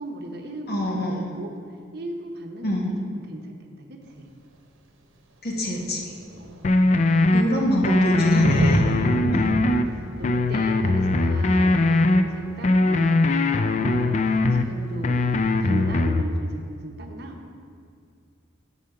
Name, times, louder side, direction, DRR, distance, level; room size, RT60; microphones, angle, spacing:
voice 1, 0.0-1.5 1.9-4.3 6.4-7.6 8.8-9.6 9.9-15.2 15.6-17.4, right 1 dB, 55° right, 3 dB, 0.8 m, -38 dB
voice 2, 0.7-1.3 2.6-2.9 5.4-6.0 7.3-9.6, equal, 50° left, -2 dB, 1.0 m, -25 dB
Thunder, 4.1-4.2 5.2-5.3 5.5-12.8 14.5-14.6, right 1 dB, 80° right, 0.8 m, -32 dB
sound 1, 6.6-7.4 7.8-9.8 10.2-12.2 12.6-14.6 15.0-16.2, left 2 dB, 35° left, 0.3 m, -20 dB
6.6 x 5.1 x 6.7 m, 2.2 s
head